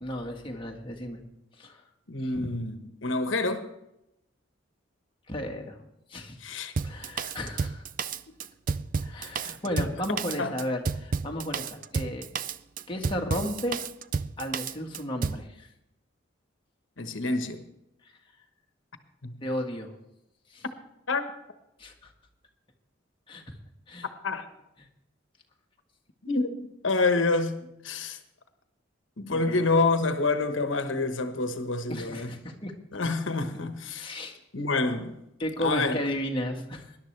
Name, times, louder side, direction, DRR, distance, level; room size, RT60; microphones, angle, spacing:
voice 1, 0.0-1.2 1.6-1.8 2.2-2.5 5.3-5.8 6.1-6.4 6.8-7.8 9.0-12.3 12.9-13.8 14.4-15.7 18.0-18.2 19.4-19.9 20.5-20.6 21.8-22.1 23.3-23.4 23.9-24.1 24.8-24.9 29.3-29.6 31.9-32.7 33.0-33.1 33.9-34.4 35.4-37.0, left 1 dB, 25° left, 1.7 m, -34 dB
voice 2, 2.1-3.7 6.4-6.7 9.7-9.8 10.4-10.5 17.0-17.6 19.2-19.4 21.1-21.3 24.2-24.5 26.2-28.2 29.2-32.3 32.9-34.1 34.5-35.2 35.6-36.0, left 3 dB, 75° left, 1.2 m, -27 dB
Drum kit, 6.8-15.5, right 5 dB, 45° right, 0.4 m, -31 dB
20.0 x 11.5 x 3.3 m
head